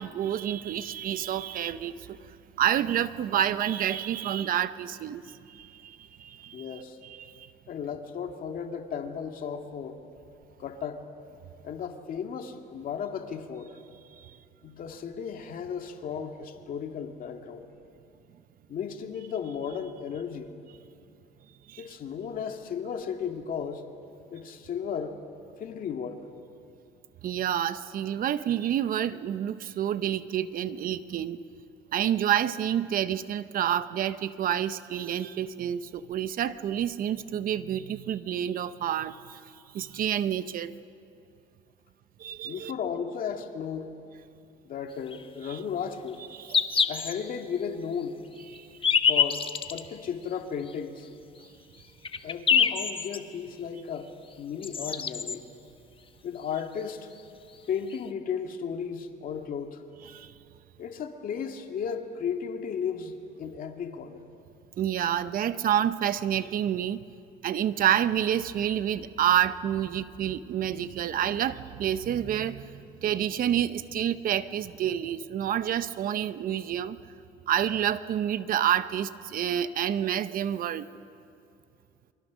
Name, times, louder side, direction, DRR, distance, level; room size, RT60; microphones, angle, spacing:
voice 1, 0.0-7.5 14.2-14.3 21.7-21.9 27.2-31.4 31.9-39.4 39.7-40.8 42.2-42.7 45.4-45.6 46.3-46.9 48.5-48.8 60.1-60.3 64.8-67.0 67.4-77.0 77.5-80.9, right 10 dB, 55° right, 13 dB, 0.8 m, -29 dB
voice 2, 6.5-7.0 7.7-10.0 10.6-11.0 11.6-13.7 14.6-17.7 18.7-20.6 21.8-23.9 24.3-25.2 25.6-26.3 42.4-43.9 44.7-46.2 46.9-48.2 49.1-51.1 52.2-55.4 56.2-57.1 57.7-59.8 60.8-64.2, left 7 dB, 55° left, 4 dB, 2.1 m, -35 dB
sound 1, 45.1-45.2 46.1-46.2 46.5-47.1 47.6-47.7 48.5-49.8 50.7-50.8 51.4-51.5 51.8-53.2 54.3-54.4 54.6-55.3 56.8-56.9 57.1-57.2 57.9-58.0, left 7 dB, 30° left, 1.2 m, -25 dB
29.0 x 24.0 x 6.3 m, 2.5 s
cardioid pair, 110°, 17 cm